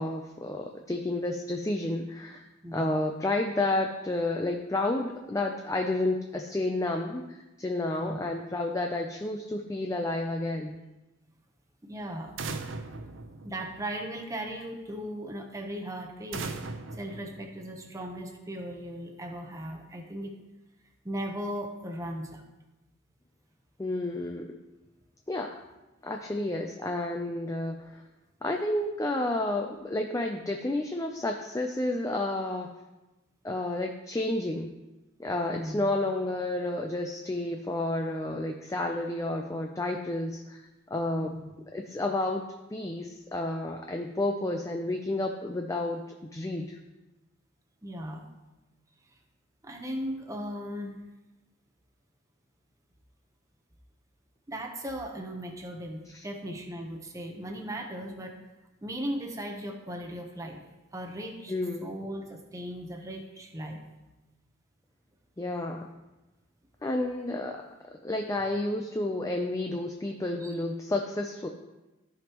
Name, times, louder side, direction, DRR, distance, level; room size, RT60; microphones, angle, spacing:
voice 1, 0.0-2.4 2.7-10.8 23.8-24.6 25.3-25.6 26.0-28.0 28.4-32.7 33.4-34.7 35.2-40.6 40.9-41.3 41.7-42.4 42.7-46.0 46.3-46.8 56.1-56.2 61.5-61.9 65.4-65.9 66.8-67.7 68.0-71.5, left 2 dB, 15° left, 3 dB, 0.4 m, -31 dB
voice 2, 2.6-3.0 8.0-8.2 11.8-12.3 13.4-16.6 16.9-20.3 21.0-22.4 35.5-35.9 41.2-41.5 47.8-48.2 49.6-51.0 54.5-58.3 58.8-60.6 60.9-61.5 61.8-63.8 70.4-70.6, equal, 15° right, 2 dB, 0.9 m, -37 dB
sound 1, 12.4-14.2 16.3-18.1, right 3 dB, 70° right, 0.6 m, -39 dB
14.5 x 5.2 x 3.0 m, 1.1 s
head